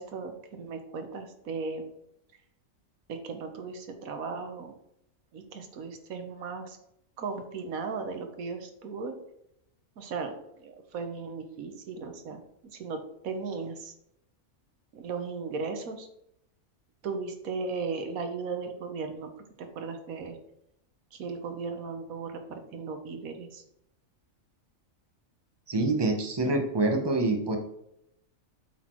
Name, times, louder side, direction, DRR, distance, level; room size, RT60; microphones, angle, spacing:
voice 1, 0.0-1.8 3.1-4.7 5.3-6.8 7.2-9.1 10.0-12.4 12.7-13.9 14.9-16.1 17.0-20.4 21.1-23.6, right 4 dB, 85° right, 6 dB, 1.5 m, -36 dB
voice 2, 25.7-27.6, right 2 dB, 20° right, 3 dB, 1.0 m, -26 dB
8.0 x 4.3 x 4.5 m, 0.79 s
omnidirectional pair, 1.4 m